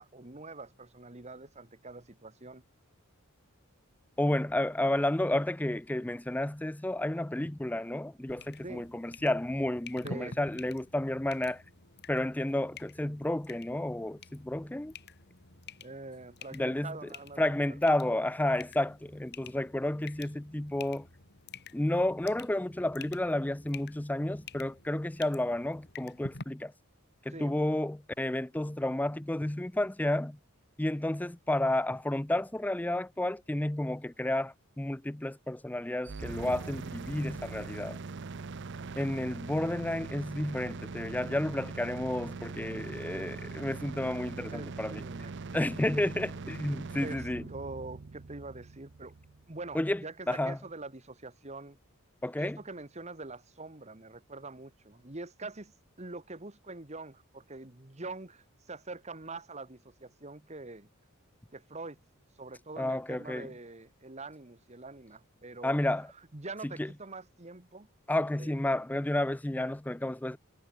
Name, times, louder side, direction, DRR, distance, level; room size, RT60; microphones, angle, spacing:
voice 1, 0.0-2.6 8.6-8.9 10.0-10.4 15.8-17.7 27.3-27.6 44.5-45.6 47.0-49.1 49.5-51.8 52.4-60.9 61.5-62.0 62.4-65.7 66.3-67.9 68.4-68.5, right 3 dB, 30° right, 1.5 m, -44 dB
voice 2, 4.2-11.6 12.1-14.9 16.5-17.0 17.4-21.1 21.7-26.7 27.2-30.4 30.8-38.0 39.0-45.0 45.5-47.4 49.7-50.6 52.2-52.6 62.8-63.5 65.6-66.1 66.6-66.9 68.1-70.4, left 1 dB, 10° left, 0.4 m, -31 dB
sound 1, 8.3-26.4, left 4 dB, 50° left, 3.7 m, -49 dB
sound 2, 36.0-50.0, right 4 dB, 55° right, 0.6 m, -42 dB
head